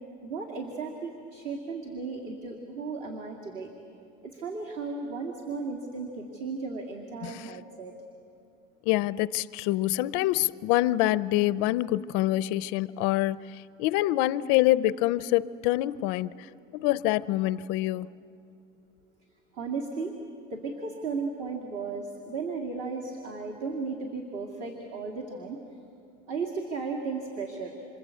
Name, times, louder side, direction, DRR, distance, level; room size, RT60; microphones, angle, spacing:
voice 1, 0.2-3.7 4.2-8.0 19.5-20.1 20.5-25.6 26.3-27.7, right 4 dB, 45° right, 2.5 m, -35 dB
voice 2, 7.2-7.5 8.9-16.5 16.7-18.1, left 16 dB, 55° left, 0.5 m, -26 dB
26.5 x 26.5 x 8.4 m
cardioid pair, 160°, 19 cm